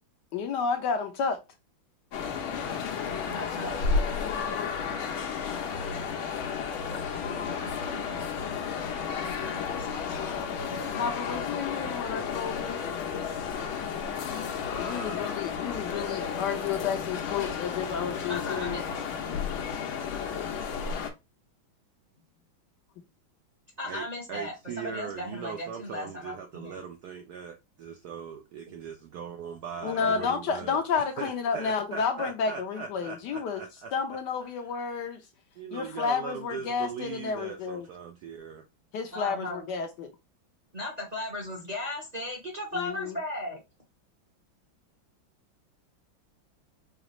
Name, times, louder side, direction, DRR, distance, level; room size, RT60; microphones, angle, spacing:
voice 1, 0.3-1.4 10.9-12.8 14.8-18.8 29.8-35.2 35.7-37.9 38.9-40.1 42.7-43.2, left 6 dB, 70° left, 1.1 m, -31 dB
sound 1, 2.1-21.1, left 6 dB, 85° left, 1.6 m, -32 dB
voice 2, 3.3-3.8 6.9-8.9 9.5-11.1 18.3-19.1 23.8-26.8 29.7-30.3 39.1-39.7 40.7-43.6, left 1 dB, 35° right, 0.7 m, -38 dB
voice 3, 24.3-27.5 27.8-30.7 31.2-31.3 31.5-33.9 35.6-38.6, right 6 dB, 80° right, 0.9 m, -39 dB
5.0 x 2.4 x 3.0 m
omnidirectional pair, 2.2 m